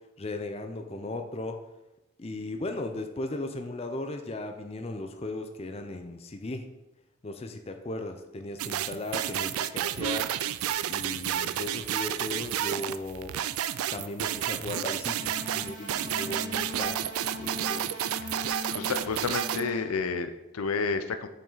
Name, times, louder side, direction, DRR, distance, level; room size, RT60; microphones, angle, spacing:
voice 1, 0.2-1.6 2.2-6.7 7.2-10.3 10.8-13.4 13.9-17.0 17.3-17.9, left 2 dB, 30° left, 6 dB, 0.5 m, -37 dB
sound 1, 8.6-19.7, right 11 dB, 85° right, 0.3 m, -31 dB
sound 2, 15.1-19.8, left 2 dB, 20° right, 1.9 m, -40 dB
voice 2, 18.6-21.3, left 4 dB, 85° left, 9 dB, 0.6 m, -30 dB
7.1 x 5.4 x 4.0 m, 0.97 s
head